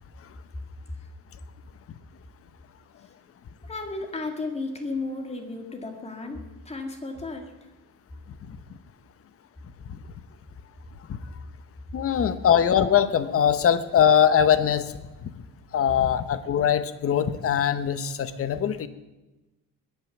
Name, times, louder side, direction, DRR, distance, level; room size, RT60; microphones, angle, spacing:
voice 1, 3.6-6.4 6.6-7.7, left 3 dB, 20° left, 4 dB, 2.1 m, -34 dB
voice 2, 11.9-15.0 15.2-15.3 15.7-18.9, left 8 dB, 40° left, 13 dB, 0.9 m, -22 dB
21.0 x 9.3 x 7.1 m, 1.1 s
cardioid pair, 165°, 34 cm